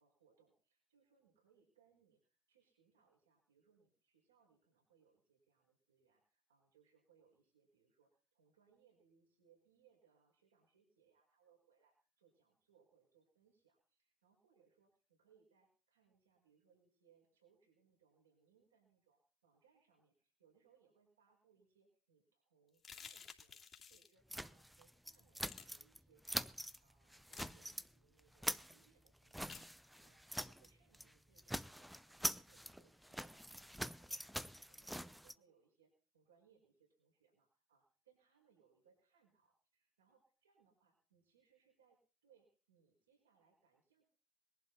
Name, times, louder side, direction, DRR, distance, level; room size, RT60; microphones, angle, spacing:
voice 1, 0.0-20.1 20.4-23.6 23.9-33.7 34.0-44.0, right 6 dB, 80° right, 0 dB, 5.5 m, -74 dB
sound 1, 22.8-24.1 25.4-25.6 27.3-27.5 29.5-29.7, left 6 dB, 35° left, 2.8 m, -53 dB
sound 2, 24.3-26.0 26.2-26.8 27.1-27.9 28.2-30.7 30.9-31.1 31.4-35.3, equal, ahead, 0.7 m, -44 dB
21.0 x 11.5 x 4.2 m, 0.40 s
figure-of-eight pair, 65°, 0 cm